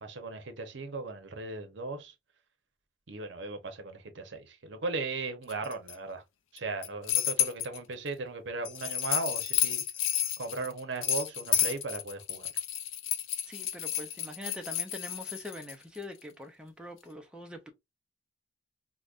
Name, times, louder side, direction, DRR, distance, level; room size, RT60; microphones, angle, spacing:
voice 1, 0.0-2.1 3.1-6.2 6.5-9.8 10.4-12.5, right 3 dB, 65° right, 0.8 m, -37 dB
sound 1, 5.5-5.9 6.6-7.8 8.6-15.7, left 11 dB, 85° left, 0.5 m, -31 dB
voice 2, 13.5-17.7, left 1 dB, 5° right, 0.4 m, -43 dB
4.9 x 2.1 x 2.4 m
head